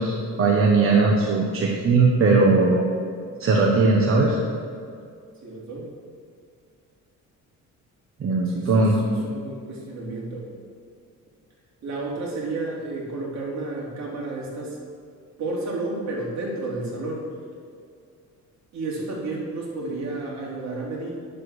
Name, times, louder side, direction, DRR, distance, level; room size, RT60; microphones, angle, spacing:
voice 1, 0.0-2.9 3.4-4.4 8.2-9.0, right 3 dB, 45° right, -1 dB, 1.2 m, -19 dB
voice 2, 5.4-5.9 8.4-10.5 11.8-14.8 15.4-17.2 18.7-21.1, right 2 dB, 60° right, -3 dB, 3.2 m, -31 dB
10.0 x 7.8 x 6.4 m, 2.3 s
cardioid pair, 155°, 31 cm